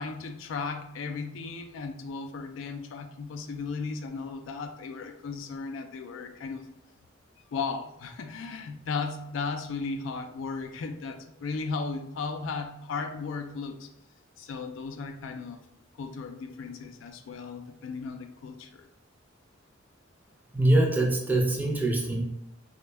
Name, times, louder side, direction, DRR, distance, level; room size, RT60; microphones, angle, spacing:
voice 1, 0.0-6.7 7.5-13.9 14.4-15.6 16.0-18.9, left 4 dB, 75° left, 6 dB, 0.3 m, -36 dB
voice 2, 20.5-22.2, right 1 dB, 10° right, -1 dB, 0.5 m, -23 dB
3.3 x 2.2 x 3.2 m, 0.84 s
head